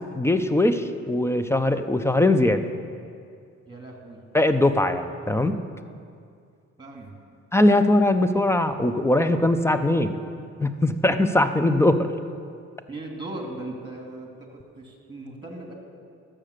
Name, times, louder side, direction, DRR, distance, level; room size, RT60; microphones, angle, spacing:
voice 1, 0.1-2.6 4.3-5.6 7.5-10.2 10.6-12.1, left 1 dB, 10° left, 9 dB, 0.6 m, -21 dB
voice 2, 3.7-4.2 6.8-7.2 12.9-15.7, right 2 dB, 15° right, 1 dB, 2.4 m, -38 dB
12.5 x 7.6 x 6.6 m, 2.3 s
cardioid pair, 90°, 30 cm